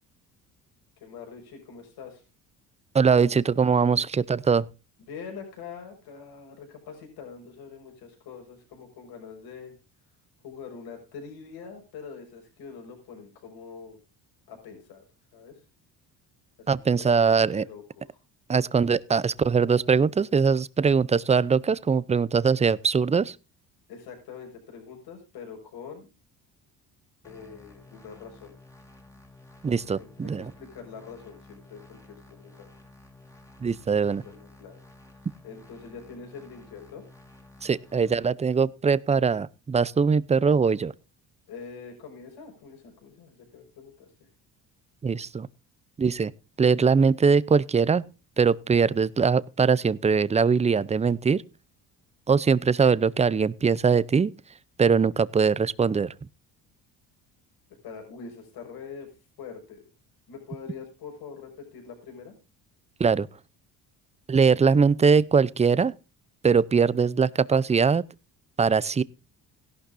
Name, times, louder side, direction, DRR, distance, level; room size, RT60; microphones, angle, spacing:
voice 1, 1.0-2.2 5.1-9.7 10.4-14.0 14.5-15.0 15.3-15.6 16.6-18.0 23.9-26.1 27.2-28.5 30.0-32.7 34.1-34.7 35.4-37.0 41.5-44.1 57.8-59.1 59.4-59.8 60.3-62.3, left 6 dB, 75° left, 5.7 m, -44 dB
voice 2, 2.9-4.7 16.7-17.6 18.5-23.4 29.6-30.5 33.6-34.2 37.6-40.9 45.0-45.5 46.0-46.3 46.6-48.0 48.4-51.4 52.3-54.3 54.8-56.1 63.0-63.3 64.3-65.9 66.4-68.0 68.6-69.0, right 5 dB, 20° right, 0.5 m, -22 dB
sound 1, 27.2-38.2, left 2 dB, 10° left, 2.7 m, -52 dB
16.5 x 11.5 x 2.6 m
cardioid pair, 105°, 37 cm